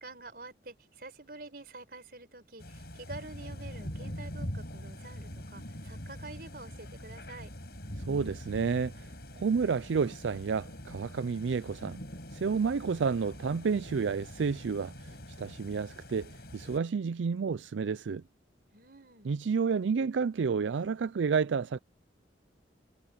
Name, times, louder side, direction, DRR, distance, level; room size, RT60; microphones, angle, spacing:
voice 1, 0.0-7.5 18.7-19.3, right 2 dB, 55° right, 5.2 m, -47 dB
sound 1, 2.6-16.8, equal, 60° left, 6.6 m, -43 dB
voice 2, 8.0-12.0 12.3-18.2 19.2-21.8, right 5 dB, 85° right, 0.4 m, -30 dB
head